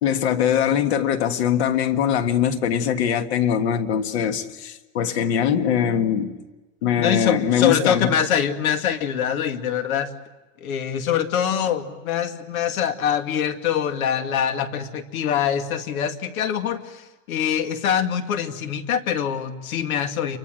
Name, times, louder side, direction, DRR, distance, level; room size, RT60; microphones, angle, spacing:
voice 1, 0.0-6.3 6.8-8.1, left 8 dB, 50° left, 1.7 m, -22 dB
voice 2, 7.0-10.1 10.6-20.4, left 8 dB, 75° left, 2.5 m, -24 dB
28.5 x 24.0 x 7.8 m
supercardioid pair, 175°, 42 cm